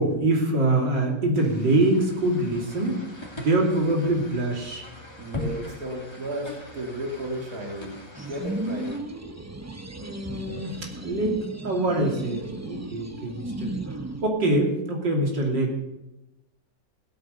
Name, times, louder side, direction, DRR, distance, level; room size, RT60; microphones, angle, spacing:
voice 1, 0.0-4.9 9.9-15.7, right 2 dB, 80° right, 0 dB, 3.5 m, -25 dB
sound 1, 1.4-9.0, left 2 dB, 15° left, 2.4 m, -40 dB
voice 2, 5.2-9.0 9.8-9.9, right 1 dB, 55° right, 1 dB, 2.7 m, -34 dB
sound 2, 8.1-14.3, right 2 dB, 25° right, 0.3 m, -35 dB
16.5 x 9.2 x 6.9 m, 0.95 s
omnidirectional pair, 1.9 m